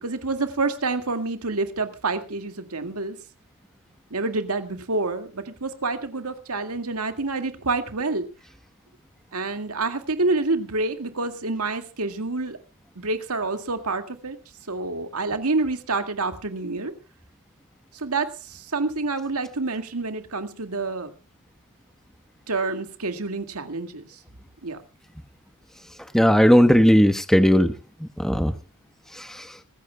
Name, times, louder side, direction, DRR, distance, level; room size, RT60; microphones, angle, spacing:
voice 1, 0.0-3.2 4.1-8.3 9.3-12.6 13.0-14.4 14.7-16.9 17.9-21.1 22.5-24.2 24.6-24.8, right 3 dB, 85° right, 7 dB, 2.0 m, -28 dB
voice 2, 26.1-27.7 28.2-28.5 29.1-29.5, equal, ahead, 9 dB, 1.0 m, -17 dB
25.5 x 15.0 x 2.2 m, 0.31 s
head